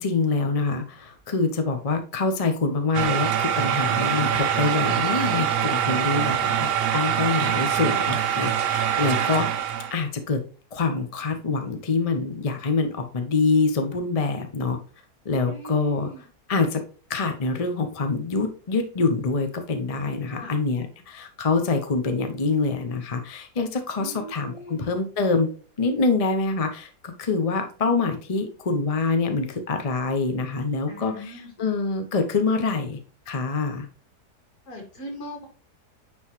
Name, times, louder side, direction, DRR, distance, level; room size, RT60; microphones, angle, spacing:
voice 1, 0.0-9.5 9.9-10.4 10.7-14.8 15.2-16.1 16.5-16.8 17.1-25.5 25.8-33.0 33.3-33.9, left 4 dB, 30° left, 6 dB, 0.7 m, -25 dB
sound 1, 2.9-10.0, right 9 dB, 60° right, 0.6 m, -24 dB
voice 2, 15.4-16.2 20.3-20.6 24.0-24.9 30.9-31.5 34.7-35.5, right 1 dB, 65° left, 1 dB, 2.8 m, -40 dB
9.7 x 4.0 x 3.0 m, 0.39 s
omnidirectional pair, 1.7 m